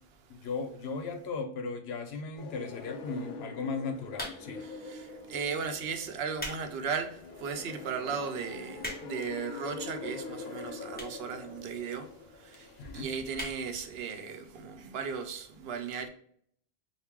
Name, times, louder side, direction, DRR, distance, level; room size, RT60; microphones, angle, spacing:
voice 1, 0.3-4.7 12.8-13.1, left 4 dB, 90° left, 0.9 m, -37 dB
sound 1, 2.4-14.0, left 3 dB, 60° left, 0.8 m, -44 dB
sound 2, 4.1-4.7 5.4-5.6 6.1-6.6 7.1-7.2 7.8-7.9 8.1-8.2 8.4-9.3 10.1-10.2 10.9-11.3 11.6-11.7 11.9-12.0 12.2-12.3 12.6-12.8 13.3-13.6 14.0-14.1 14.3-14.4, left 1 dB, 10° left, 1.0 m, -39 dB
voice 2, 4.6-16.1, right 6 dB, 75° right, 0.8 m, -37 dB
3.5 x 2.5 x 2.9 m
omnidirectional pair, 1.0 m